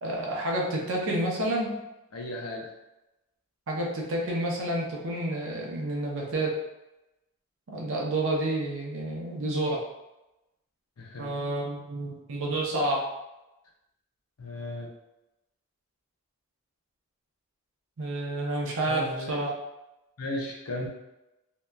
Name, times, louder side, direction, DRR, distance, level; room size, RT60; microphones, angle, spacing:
voice 1, 0.0-1.8 3.7-6.5 7.7-9.8 11.2-13.0 18.0-19.5, right 1 dB, 60° right, -2 dB, 0.6 m, -29 dB
voice 2, 2.1-2.7 11.0-11.3 14.4-14.9 18.8-19.4 20.2-20.9, left 1 dB, 80° left, 0 dB, 0.6 m, -35 dB
2.7 x 2.2 x 2.2 m, 0.95 s
head